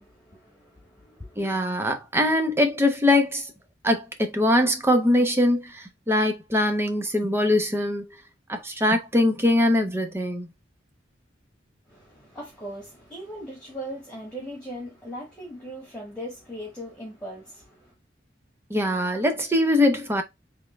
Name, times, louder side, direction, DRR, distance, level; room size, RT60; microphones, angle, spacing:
voice 1, 0.0-1.5 11.9-17.9, equal, 5° left, 1.6 m, -39 dB
voice 2, 1.4-3.4 3.8-8.0 8.5-10.5 18.7-20.2, left 1 dB, 15° right, 0.8 m, -22 dB
3.6 x 3.3 x 3.3 m
head